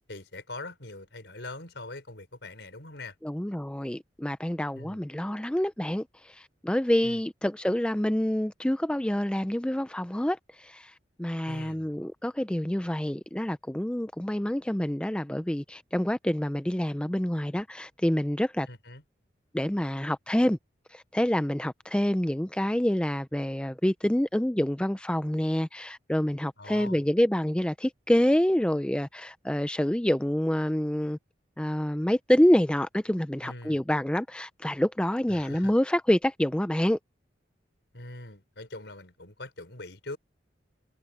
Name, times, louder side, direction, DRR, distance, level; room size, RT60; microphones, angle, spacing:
voice 1, 0.1-3.1 4.7-5.0 7.0-7.2 11.5-12.0 18.7-19.0 26.6-27.0 33.4-33.8 35.3-35.8 37.9-40.2, left 2 dB, 75° left, 4.6 m, -42 dB
voice 2, 3.2-10.9 11.2-18.7 19.5-20.6 20.9-31.2 31.6-37.0, equal, 5° left, 0.4 m, -27 dB
head